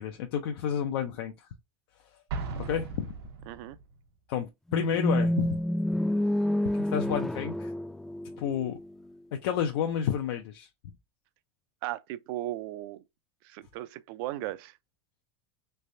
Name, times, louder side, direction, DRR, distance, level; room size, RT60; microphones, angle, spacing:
voice 1, 0.0-1.3 2.6-3.1 4.3-5.6 6.8-7.7 8.4-8.8 9.4-10.7, left 9 dB, 85° left, 0.6 m, -30 dB
Explosion, 2.3-4.0, right 4 dB, 90° right, 1.0 m, -37 dB
voice 2, 3.5-3.8 11.8-13.0 13.4-14.8, right 15 dB, 65° right, 0.4 m, -36 dB
sound 1, 4.7-8.8, left 1 dB, 5° left, 0.4 m, -28 dB
3.3 x 3.2 x 2.6 m
supercardioid pair, 140°, 13 cm